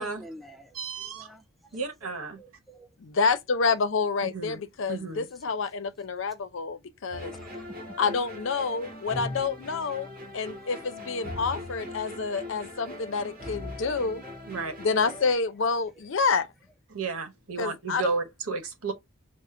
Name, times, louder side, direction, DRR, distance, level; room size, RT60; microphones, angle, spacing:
voice 1, 0.0-0.8 1.0-1.4 2.0-2.9 6.4-6.5 7.3-7.8 10.5-10.6 12.2-12.6 14.2-14.6, right 1 dB, ahead, 0.3 m, -49 dB
voice 2, 0.7-1.3 1.7-2.4 4.2-4.6 4.9-5.3 14.5-14.7 16.9-18.9, right 4 dB, 90° right, 1.0 m, -33 dB
voice 3, 3.0-7.3 8.0-10.1 10.3-14.2 14.8-16.5 17.6-18.1, left 4 dB, 60° left, 0.5 m, -28 dB
sound 1, 7.1-15.3, left 1 dB, 40° right, 1.9 m, -40 dB
4.9 x 2.1 x 3.6 m
head